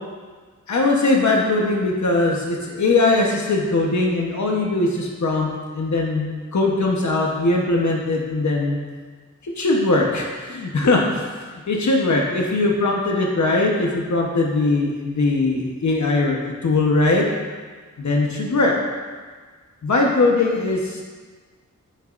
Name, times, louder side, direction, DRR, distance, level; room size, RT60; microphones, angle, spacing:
voice 1, 0.7-8.8 9.4-11.2 11.7-17.2 18.0-18.7 19.8-21.0, left 2 dB, 60° left, -1 dB, 1.1 m, -20 dB
10.5 x 9.1 x 2.5 m, 1.5 s
wide cardioid pair, 115°, 32 cm